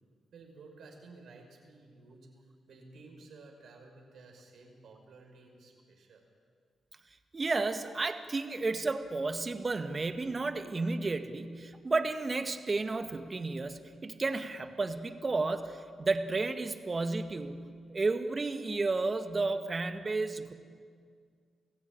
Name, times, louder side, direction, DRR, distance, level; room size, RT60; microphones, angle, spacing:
voice 1, 0.3-6.2, right 3 dB, 70° right, 2 dB, 5.7 m, -54 dB
voice 2, 7.3-20.5, right 3 dB, 40° right, 8 dB, 1.9 m, -32 dB
29.0 x 16.0 x 8.9 m, 2.1 s
hypercardioid pair, 40°, 0 cm